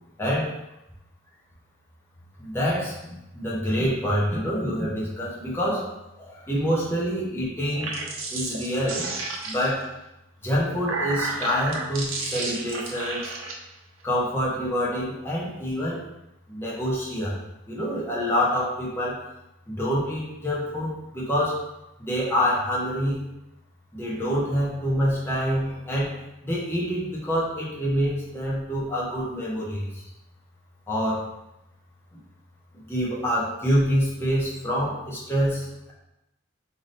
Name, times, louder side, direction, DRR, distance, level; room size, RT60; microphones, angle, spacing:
voice 1, 0.2-0.5 2.4-5.9 6.2-8.0 8.3-9.1 9.5-9.9 10.4-13.3 14.0-16.0 16.5-17.4 17.7-19.2 19.7-21.6 22.0-23.3 23.9-26.1 26.4-30.0 30.9-31.3 32.8-35.9, equal, 10° left, -7 dB, 1.1 m, -26 dB
sound 1, 7.7-9.9 10.5-13.5, right 3 dB, 85° right, 0.8 m, -32 dB
3.6 x 3.5 x 4.0 m, 0.91 s
head